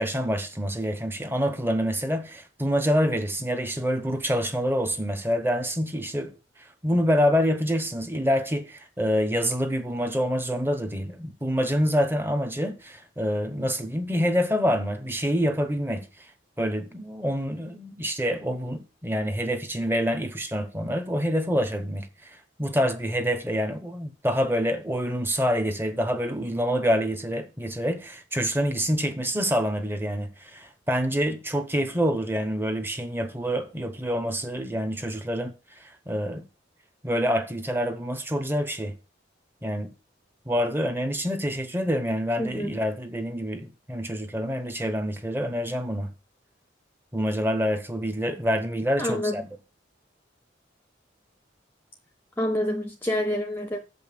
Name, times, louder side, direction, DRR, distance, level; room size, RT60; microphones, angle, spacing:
voice 1, 0.0-6.3 6.8-16.1 16.6-36.4 37.0-38.9 39.6-39.9 40.5-46.1 47.1-49.4, equal, 10° right, 0.9 m, -26 dB
voice 2, 42.4-42.8 49.0-49.4 52.4-53.8, left 1 dB, 10° left, 0.7 m, -27 dB
7.2 x 5.3 x 6.8 m
head